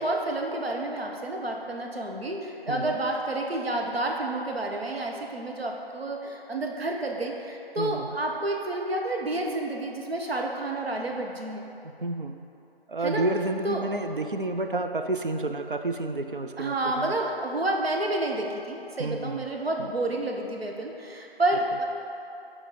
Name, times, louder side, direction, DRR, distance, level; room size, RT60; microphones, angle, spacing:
voice 1, 0.0-11.6 13.0-13.3 13.6-13.8 16.6-21.8, right 2 dB, 75° right, 0 dB, 1.0 m, -29 dB
voice 2, 7.8-8.1 12.0-12.4 12.9-17.1 19.0-19.5 19.8-19.9, right 2 dB, 55° right, 6 dB, 0.5 m, -30 dB
7.3 x 4.8 x 3.7 m, 2.8 s
figure-of-eight pair, 170°, 31 cm